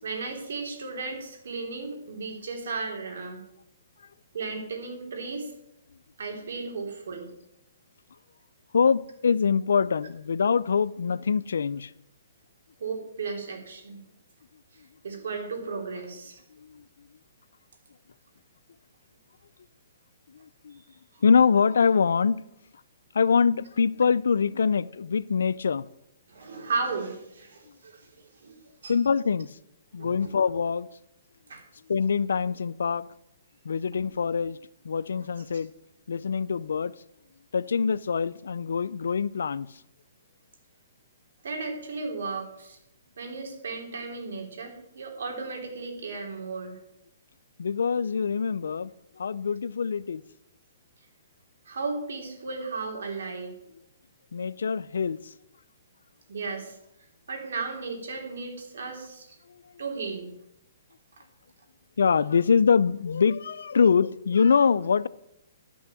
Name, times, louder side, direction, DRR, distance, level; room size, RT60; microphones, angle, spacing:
voice 1, 0.0-3.4 4.3-5.5 6.2-7.3 12.8-14.0 15.0-16.4 26.3-28.6 28.8-29.0 30.0-30.3 31.5-31.6 33.9-34.0 35.4-35.5 41.4-42.8 43.2-46.8 51.7-53.6 56.3-56.8 57.3-59.4 59.8-60.3, right 4 dB, 75° right, 3.4 m, -35 dB
voice 2, 8.7-11.9 16.7-16.8 20.6-20.8 21.2-22.4 23.1-25.9 28.9-29.5 29.9-30.9 31.9-33.1 33.6-34.6 34.8-35.7 36.1-36.9 37.5-39.7 47.6-48.9 49.2-50.2 54.3-55.2 62.0-65.1, left 6 dB, 85° left, 0.4 m, -24 dB
12.0 x 6.2 x 6.9 m
hypercardioid pair, 155°, 0 cm